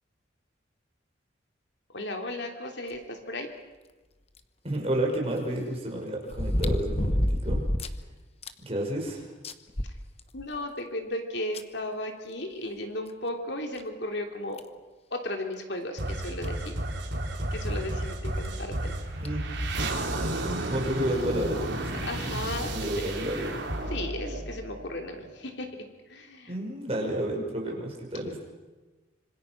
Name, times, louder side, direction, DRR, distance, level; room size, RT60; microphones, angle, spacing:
voice 1, 1.9-3.5 10.3-14.6 15.1-16.7 17.5-18.9 22.0-23.0 23.9-25.7 26.1-26.5, left 1 dB, 60° left, 4 dB, 3.2 m, -35 dB
sound 1, 4.4-4.5 6.3-8.0 8.4-8.5 9.0-9.1 9.4-10.6 11.5-11.6 13.1-13.2 13.8-13.9 14.6-14.8 16.1-16.2 16.4-16.5 18.2-18.5 19.2-19.3, left 1 dB, 30° left, 1.2 m, -28 dB
voice 2, 4.6-7.6 8.6-9.3 19.2-19.4 20.1-21.9 22.2-22.4 22.7-23.6 26.5-28.4, right 1 dB, 30° right, -1 dB, 5.8 m, -31 dB
sound 2, 16.0-25.3, right 1 dB, 65° right, 3.8 m, -32 dB
26.5 x 25.5 x 6.1 m, 1.2 s
head